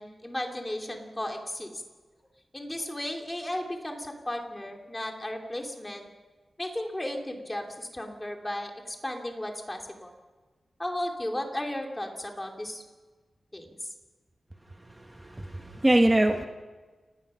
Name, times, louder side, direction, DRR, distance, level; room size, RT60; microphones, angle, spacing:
voice 1, 0.0-1.8 2.5-6.1 6.6-10.1 10.8-12.8 13.5-13.9, left 1 dB, 15° left, 2 dB, 2.8 m, -35 dB
voice 2, 14.7-16.4, right 1 dB, 15° right, 4 dB, 1.1 m, -24 dB
29.5 x 18.5 x 5.7 m, 1.3 s
wide cardioid pair, 165°, 0 cm